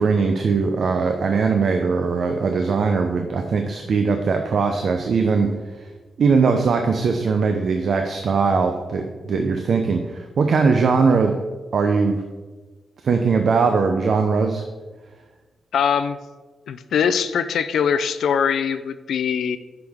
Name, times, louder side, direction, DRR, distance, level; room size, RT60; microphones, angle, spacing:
voice 1, 0.0-5.5 5.8-5.9 6.2-11.4 11.7-12.2 13.0-14.6, right 4 dB, 50° right, 5 dB, 0.6 m, -20 dB
voice 2, 15.7-16.2 16.7-19.6, left 7 dB, 85° left, 12 dB, 0.4 m, -22 dB
9.7 x 6.0 x 3.6 m, 1.3 s
wide cardioid pair, 180°, 0 cm